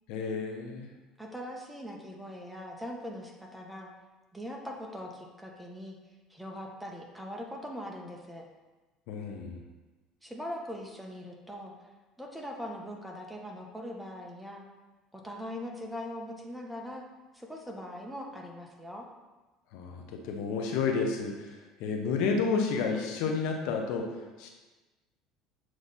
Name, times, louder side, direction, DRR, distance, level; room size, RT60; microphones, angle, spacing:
voice 1, 0.1-0.9 9.1-9.6 19.7-24.1 24.4-24.5, left 5 dB, 75° left, 2 dB, 0.9 m, -31 dB
voice 2, 1.2-3.9 4.3-6.0 6.3-8.5 10.2-11.7 12.2-14.6 15.1-17.0 17.3-19.1, equal, 5° right, 0 dB, 1.0 m, -41 dB
7.4 x 3.2 x 4.1 m, 1.2 s
supercardioid pair, 100°, 0 cm